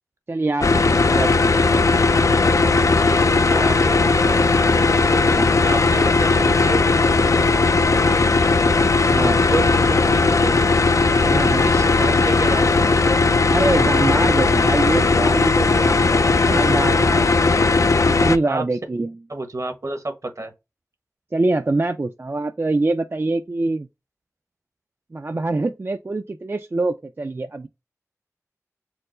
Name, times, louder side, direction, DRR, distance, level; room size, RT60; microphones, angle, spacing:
voice 1, 0.3-1.3 5.2-5.5 9.1-9.4 11.3-11.7 13.5-17.2 18.1-19.1 21.3-23.9 25.1-27.7, right 2 dB, 40° right, 0.3 m, -24 dB
sound 1, 0.6-18.4, left 3 dB, 65° left, 0.3 m, -17 dB
voice 2, 3.0-4.5 5.6-6.9 8.0-8.3 9.4-10.6 11.0-13.2 16.5-16.9 18.4-18.6 19.3-20.5, right 2 dB, 65° right, 1.0 m, -30 dB
4.5 x 2.0 x 3.8 m
wide cardioid pair, 65°, 6 cm